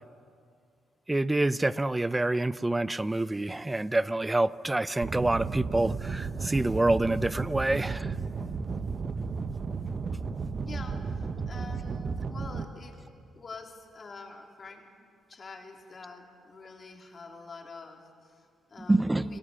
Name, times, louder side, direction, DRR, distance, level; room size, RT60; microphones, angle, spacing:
voice 1, 1.1-8.1 18.9-19.4, right 2 dB, 15° right, 17 dB, 0.6 m, -27 dB
sound 1, 5.0-12.6, right 4 dB, 40° right, 1.1 m, -33 dB
voice 2, 10.6-13.0 13.4-14.9 15.3-19.4, left 4 dB, 40° left, 1 dB, 3.6 m, -46 dB
29.0 x 18.5 x 7.0 m, 2.2 s
cardioid pair, 90°, 0 cm